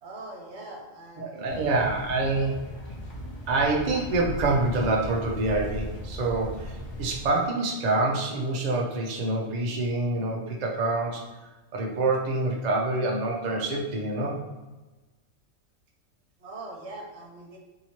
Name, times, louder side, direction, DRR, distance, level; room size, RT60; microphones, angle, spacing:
voice 1, 0.0-1.9 16.4-17.6, right 2 dB, 65° right, 0 dB, 1.0 m, -42 dB
voice 2, 1.2-2.6 3.5-11.2 11.7-14.4, right 2 dB, 50° right, -1 dB, 0.6 m, -26 dB
sound 1, 1.5-7.3, equal, 25° left, 0.7 m, -38 dB
3.0 x 2.8 x 4.2 m, 1.2 s
omnidirectional pair, 1.3 m